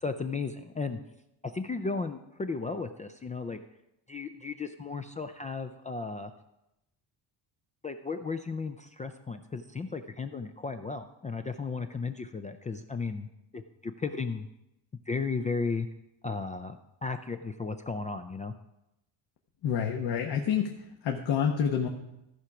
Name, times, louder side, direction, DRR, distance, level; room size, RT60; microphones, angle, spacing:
voice 1, 0.0-1.0 1.4-3.6 4.1-6.3 7.8-13.3 13.5-14.5 15.1-15.9 16.2-18.5, left 4 dB, 20° left, 7 dB, 0.3 m, -35 dB
voice 2, 19.6-21.9, left 7 dB, 60° left, 2 dB, 1.1 m, -28 dB
14.5 x 4.9 x 5.8 m, 0.89 s
cardioid pair, 130°, 44 cm